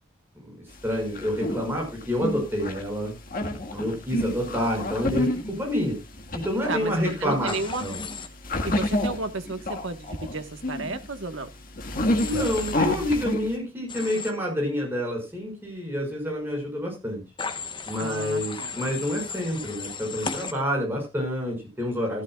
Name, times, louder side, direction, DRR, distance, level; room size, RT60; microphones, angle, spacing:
sound 1, 0.8-13.5, left 1 dB, 45° left, 1.8 m, -30 dB
voice 1, 0.8-3.1 3.4-6.0 6.3-8.0 12.2-17.2 17.9-22.2, equal, 10° right, -1 dB, 5.9 m, -28 dB
voice 2, 6.7-7.9 8.6-11.5 18.0-18.7, right 3 dB, 70° right, 8 dB, 1.4 m, -33 dB
Human voice / Train, 7.5-8.3 12.2-12.7 13.9-14.3 17.4-20.5, left 5 dB, 25° left, 1.1 m, -35 dB
14.5 x 13.0 x 2.4 m, 0.26 s
head